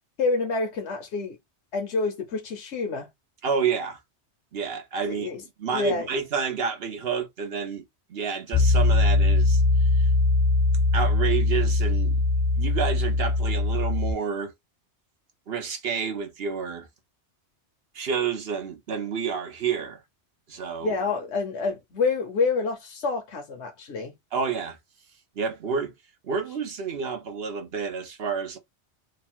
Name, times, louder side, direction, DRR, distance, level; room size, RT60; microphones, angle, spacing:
voice 1, 0.2-1.4 1.7-3.1 5.1-6.1 20.8-24.1, left 4 dB, 75° left, 1.1 m, -28 dB
voice 2, 3.4-4.0 4.5-5.3 5.6-7.8 8.1-10.1 10.9-12.2 12.5-14.5 15.5-16.9 17.9-20.0 20.5-20.9 24.3-24.8 25.4-25.9 26.2-28.6, right 6 dB, 60° right, 1.1 m, -29 dB
Piano, 8.5-14.1, left 2 dB, 25° left, 0.7 m, -21 dB
3.3 x 2.3 x 4.2 m
omnidirectional pair, 1.2 m